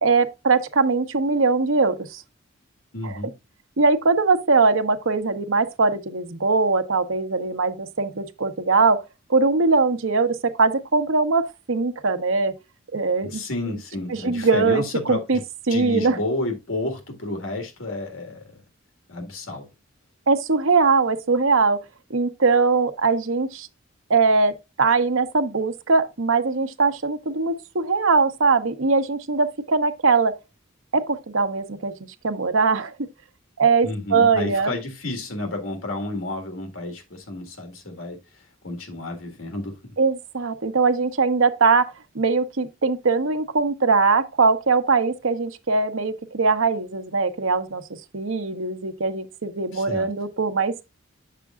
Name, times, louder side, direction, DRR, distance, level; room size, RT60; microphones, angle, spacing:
voice 1, 0.0-2.2 3.0-3.2 3.8-9.0 9.3-12.5 12.9-13.4 14.1-15.4 15.7-16.2 20.3-21.8 22.1-23.7 24.1-30.3 30.9-31.9 32.2-32.9 33.6-34.7 40.0-47.8 48.1-50.8, right 4 dB, 75° right, 0.9 m, -21 dB
voice 2, 2.9-3.3 13.2-15.4 15.7-18.4 19.1-19.7 33.8-40.0 49.7-50.1, left 2 dB, 80° left, 1.8 m, -31 dB
8.4 x 6.7 x 2.4 m
head